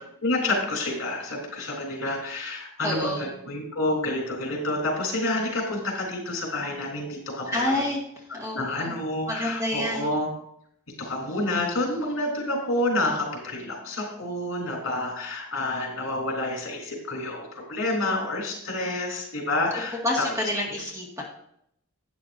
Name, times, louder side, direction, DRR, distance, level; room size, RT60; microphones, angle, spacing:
voice 1, 0.2-7.8 8.5-10.3 11.0-20.3 20.7-20.8, left 2 dB, 60° left, 1 dB, 3.5 m, -29 dB
voice 2, 2.8-3.3 7.5-8.0 8.3-9.0 9.3-10.0 20.0-21.2, left 1 dB, 15° right, -2 dB, 1.9 m, -28 dB
12.0 x 9.3 x 2.7 m, 0.73 s
head